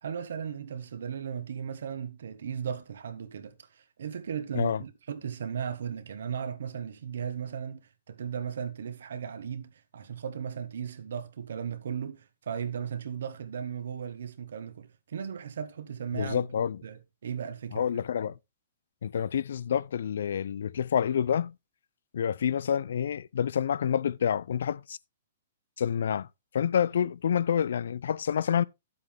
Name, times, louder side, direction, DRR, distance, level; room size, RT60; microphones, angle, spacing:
voice 1, 0.0-16.4 16.8-18.0, right 7 dB, 75° right, 1.4 m, -36 dB
voice 2, 16.1-16.8 17.7-18.3 19.0-21.5 22.1-25.0 25.8-26.3 26.5-28.6, left 8 dB, 75° left, 0.4 m, -28 dB
10.0 x 7.9 x 3.3 m
hypercardioid pair, 135°, 0 cm